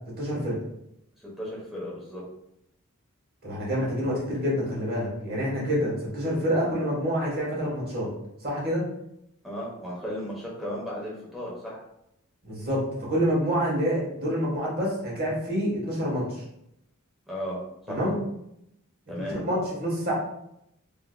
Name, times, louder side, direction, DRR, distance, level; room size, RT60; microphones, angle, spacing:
voice 1, 0.2-0.6 3.4-8.1 8.4-8.8 12.4-12.8 13.1-16.4 17.9-18.2 19.4-20.1, equal, 45° right, -4 dB, 1.2 m, -27 dB
voice 2, 1.2-2.2 9.4-11.8 17.3-17.6 17.9-18.1 19.1-19.4, equal, ahead, -5 dB, 0.9 m, -35 dB
3.4 x 2.7 x 2.2 m, 0.79 s
head